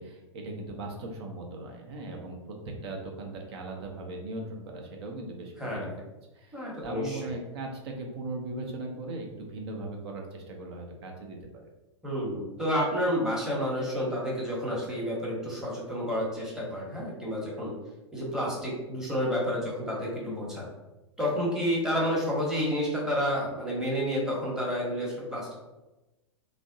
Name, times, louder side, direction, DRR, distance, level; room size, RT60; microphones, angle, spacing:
voice 1, 0.0-5.9 6.3-11.4, right 2 dB, 60° right, 1 dB, 0.7 m, -38 dB
voice 2, 5.6-5.9 6.5-7.3 12.0-17.7 18.1-20.7 21.2-25.5, equal, 5° right, -5 dB, 0.9 m, -30 dB
3.3 x 2.0 x 2.6 m, 1.1 s
hypercardioid pair, 105°, 16 cm